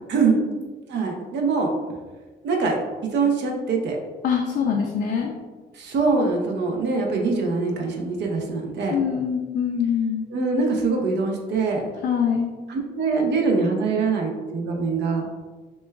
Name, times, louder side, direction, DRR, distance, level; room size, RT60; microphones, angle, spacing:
voice 1, 0.9-1.7 2.4-4.0 5.7-9.0 10.3-11.8 12.7-15.3, right 4 dB, 75° right, 1 dB, 0.7 m, -23 dB
voice 2, 4.2-5.3 8.9-10.2 12.0-12.5, left 7 dB, 70° left, 0 dB, 0.5 m, -24 dB
6.1 x 2.2 x 2.3 m, 1.3 s
cardioid pair, 85°, 18 cm